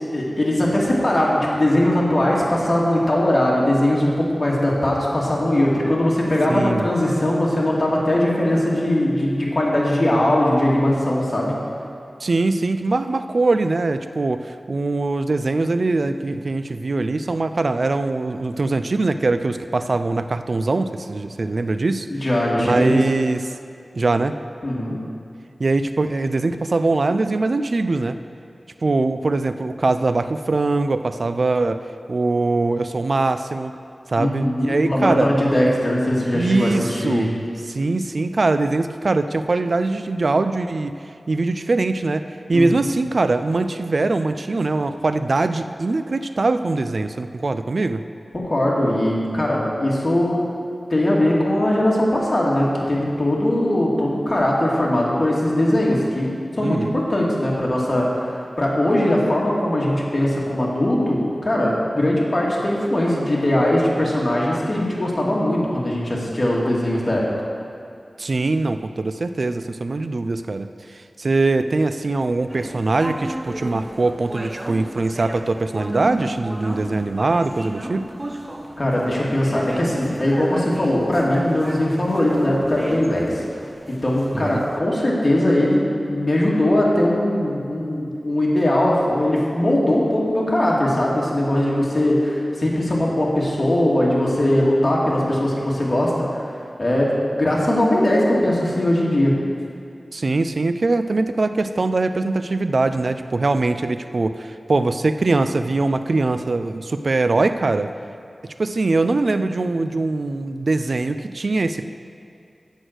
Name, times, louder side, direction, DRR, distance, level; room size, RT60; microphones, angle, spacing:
voice 1, 0.1-11.5 22.1-23.0 24.6-24.9 34.2-37.3 42.5-42.8 48.3-50.4 50.9-56.3 56.6-67.2 78.8-83.4 83.9-96.5 96.8-99.3, left 1 dB, 40° left, -4 dB, 2.1 m, -20 dB
voice 2, 6.5-6.9 12.2-22.1 22.6-23.4 23.9-24.4 25.6-28.2 28.8-31.8 32.1-33.7 34.1-35.3 36.3-40.9 41.3-42.2 42.5-48.0 56.6-57.0 68.2-78.1 84.3-84.6 100.1-107.9 108.6-111.8, right 3 dB, 65° right, 10 dB, 0.3 m, -22 dB
sound 1, 72.5-84.8, right 1 dB, 25° right, 0.8 m, -34 dB
8.0 x 6.2 x 7.9 m, 2.4 s
wide cardioid pair, 65°, 0 cm